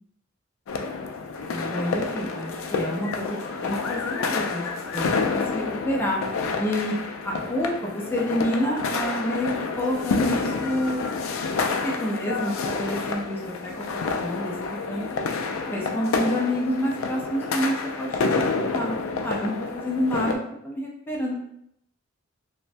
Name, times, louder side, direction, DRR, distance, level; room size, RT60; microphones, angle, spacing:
sound 1, 0.7-20.4, left 4 dB, 75° left, 0.3 m, -29 dB
voice 1, 1.5-4.6 4.9-6.2 6.6-7.0 7.2-9.5 9.8-11.0 11.8-13.8 14.1-15.1 15.6-20.4 20.6-21.4, equal, 10° left, -3 dB, 0.4 m, -28 dB
3.2 x 2.1 x 2.5 m, 0.75 s
head